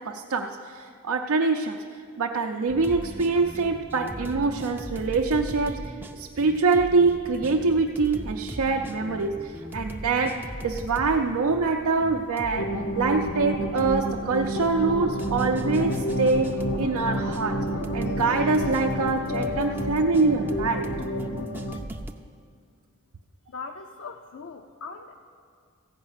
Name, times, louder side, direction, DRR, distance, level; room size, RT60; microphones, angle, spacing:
voice 1, 0.0-1.8 2.2-17.6 17.9-21.0, right 3 dB, 85° right, 2 dB, 0.5 m, -25 dB
sound 1, 2.7-22.1, right 1 dB, 10° right, 0.4 m, -38 dB
sound 2, 12.6-21.8, equal, 80° left, 0.8 m, -30 dB
voice 2, 23.5-25.1, left 4 dB, 60° left, 4 dB, 0.5 m, -40 dB
15.0 x 5.6 x 8.2 m, 2.1 s
head